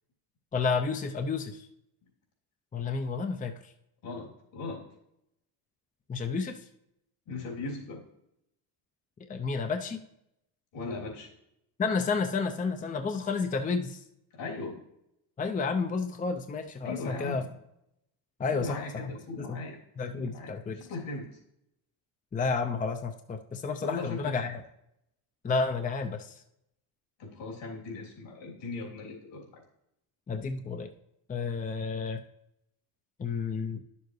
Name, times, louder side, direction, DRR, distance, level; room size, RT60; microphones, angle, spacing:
voice 1, 0.5-1.7 2.7-3.7 6.1-6.7 9.3-10.0 11.8-14.0 15.4-17.4 18.4-19.1 19.4-19.6 20.0-20.8 22.3-24.6 25.4-26.4 30.3-30.9 31.3-32.2 33.2-33.8, left 4 dB, 20° left, 6 dB, 0.6 m, -31 dB
voice 2, 4.0-4.8 7.3-8.0 10.7-11.3 14.3-14.8 16.8-17.5 18.5-19.8 20.1-21.3 23.8-24.3 27.2-29.6, left 3 dB, 70° left, -2 dB, 3.3 m, -38 dB
10.5 x 7.0 x 3.2 m, 0.81 s
cardioid pair, 100°, 44 cm